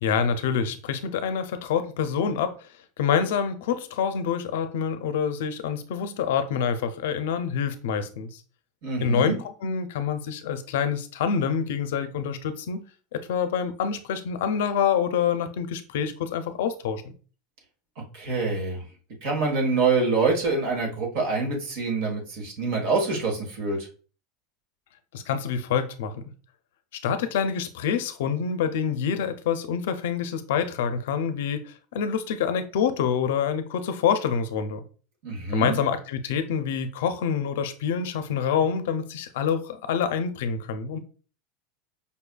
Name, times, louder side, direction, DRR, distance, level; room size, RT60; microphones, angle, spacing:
voice 1, 0.0-2.5 3.0-8.4 9.0-12.8 13.1-17.0 25.1-26.2 27.0-34.8 35.5-41.0, left 7 dB, 80° left, 0.4 m, -26 dB
voice 2, 8.8-9.4 18.1-18.9 19.2-23.9 35.2-35.8, right 4 dB, 65° right, 1.3 m, -25 dB
5.2 x 2.4 x 2.2 m
supercardioid pair, 145°, 0 cm